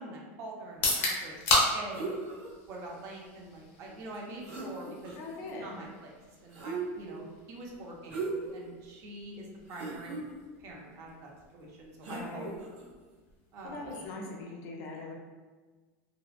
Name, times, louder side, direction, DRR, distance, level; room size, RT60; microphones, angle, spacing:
voice 1, 0.0-2.1 2.7-5.1 5.4-6.1 6.4-10.1 10.6-12.5 13.5-13.9, right 2 dB, 45° right, -1 dB, 0.5 m, -45 dB
sound 1, 0.7-14.5, left 2 dB, 80° left, 0.8 m, -37 dB
sound 2, 1.9-2.5 4.1-4.2 4.4-5.4 6.5-7.2 8.1-8.6 9.1-9.2 9.7-10.2 12.0-12.9 13.9-14.1, right 4 dB, 80° right, 1.1 m, -38 dB
voice 2, 5.2-5.8 12.1-12.5 13.6-15.1, left 2 dB, 45° left, -1 dB, 0.5 m, -41 dB
2.7 x 2.0 x 2.4 m, 1.4 s
supercardioid pair, 145°, 7 cm